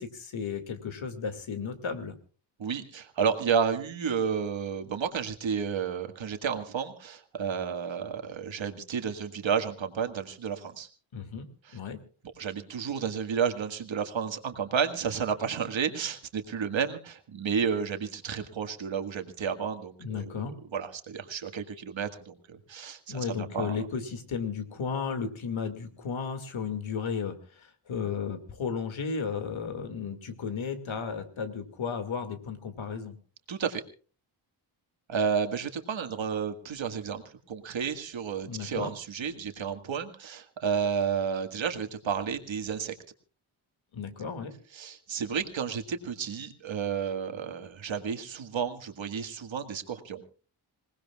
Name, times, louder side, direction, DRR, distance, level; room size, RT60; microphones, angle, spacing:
voice 1, 0.0-2.1 11.1-11.5 11.7-12.0 20.0-20.5 23.1-33.1 38.4-38.9 43.9-44.5, left 6 dB, 75° left, 8 dB, 2.4 m, -34 dB
voice 2, 2.6-10.9 11.7-11.8 12.4-20.4 20.7-23.7 33.5-33.8 35.1-37.2 37.5-43.0 44.7-50.2, right 6 dB, 70° right, 7 dB, 1.9 m, -31 dB
27.0 x 18.5 x 2.4 m, 0.39 s
wide cardioid pair, 155°, 48 cm